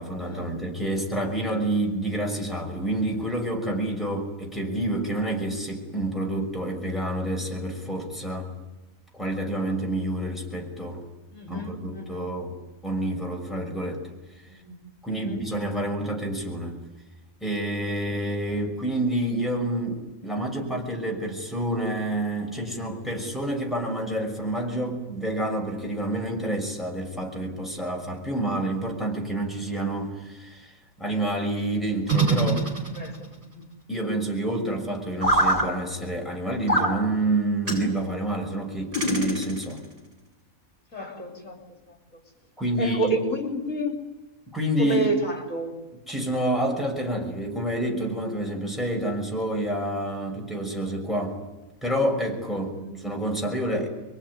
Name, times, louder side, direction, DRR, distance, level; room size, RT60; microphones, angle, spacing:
voice 1, 0.0-8.5 9.1-11.0 11.5-12.5 12.8-14.0 15.0-16.8 17.4-32.6 33.9-39.8 42.6-43.2 44.5-45.1 46.1-51.4 51.8-53.9, right 1 dB, ahead, 0 dB, 6.0 m, -28 dB
voice 2, 11.3-12.3 14.5-14.8 15.1-15.8 32.9-33.7 40.9-41.6 42.8-44.0 44.8-45.7 52.7-53.0, right 1 dB, 65° left, 3 dB, 3.7 m, -30 dB
sound 1, 32.1-33.3 35.2-35.7 36.7-36.9 37.7-37.9 38.9-39.8, right 2 dB, 35° right, 8.2 m, -23 dB
26.5 x 23.0 x 9.9 m, 1.1 s
omnidirectional pair, 1.4 m